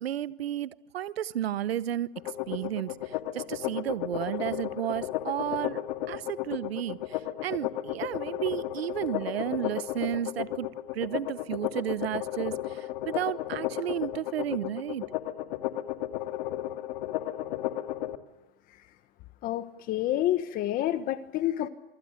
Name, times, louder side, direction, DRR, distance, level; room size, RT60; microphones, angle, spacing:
voice 1, 0.0-2.2 2.5-5.8 6.1-10.7 10.9-15.0, right 11 dB, 90° right, 17 dB, 1.0 m, -33 dB
sound 1, 2.2-18.2, left 14 dB, 55° left, 2.2 m, -33 dB
voice 2, 19.4-21.7, left 13 dB, 30° left, 12 dB, 1.3 m, -28 dB
26.5 x 24.5 x 6.6 m, 1.0 s
supercardioid pair, 150°, 30 cm